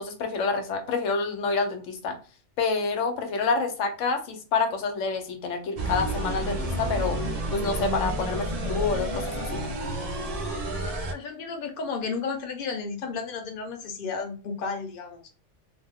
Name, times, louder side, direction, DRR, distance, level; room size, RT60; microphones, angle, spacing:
voice 1, 0.0-2.2 2.6-7.2 7.5-9.6, left 4 dB, 90° left, 1.0 m, -28 dB
sound 1, 5.8-11.1, right 1 dB, 45° right, 0.5 m, -30 dB
voice 2, 11.1-15.3, left 5 dB, 55° left, 0.8 m, -33 dB
2.5 x 2.2 x 3.4 m
omnidirectional pair, 1.3 m